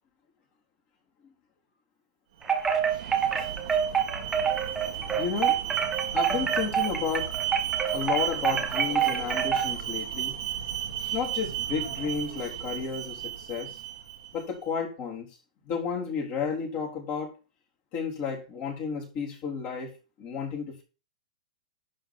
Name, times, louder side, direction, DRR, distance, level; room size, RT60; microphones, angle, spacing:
Wind chime, 2.4-9.8, right 7 dB, 15° right, 1.4 m, -27 dB
Alarm, 2.4-14.5, right 11 dB, 60° right, 2.4 m, -34 dB
voice 1, 5.2-5.6 6.1-7.3 7.9-10.4 11.1-13.8 14.3-15.3 15.7-17.3 17.9-20.8, left 6 dB, 35° left, 3.7 m, -32 dB
11.5 x 4.2 x 6.1 m
hypercardioid pair, 125°, 4 cm